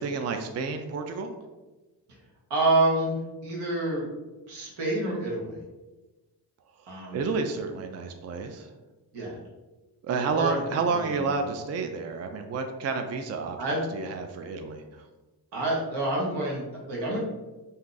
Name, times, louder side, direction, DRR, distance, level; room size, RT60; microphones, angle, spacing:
voice 1, 0.0-1.3 7.1-8.7 10.0-13.6 13.9-14.8, right 4 dB, 40° right, 6 dB, 0.4 m, -30 dB
voice 2, 2.5-4.1 4.5-5.6 6.9-7.2 9.1-9.4 10.1-10.6 11.0-11.3 13.6-13.8 15.5-17.2, right 2 dB, 85° right, -3 dB, 1.1 m, -28 dB
2.7 x 2.3 x 3.8 m, 1.1 s
cardioid pair, 60°, 40 cm